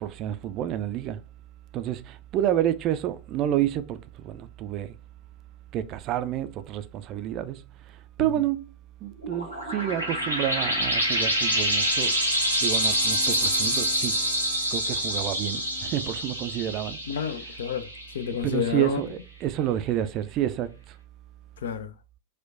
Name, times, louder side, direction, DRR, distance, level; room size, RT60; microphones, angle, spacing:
voice 1, 0.0-1.2 1.7-4.0 4.2-4.9 5.7-7.6 8.2-8.6 9.0-12.1 12.6-14.2 14.7-17.0 18.3-20.7, right 12 dB, 35° right, 0.3 m, -29 dB
sound 1, 9.2-18.4, equal, 90° left, 0.9 m, -26 dB
voice 2, 17.1-17.9 18.1-19.0 21.6-21.9, left 7 dB, 60° left, 0.3 m, -29 dB
4.4 x 2.2 x 2.4 m
figure-of-eight pair, 90°, 0 cm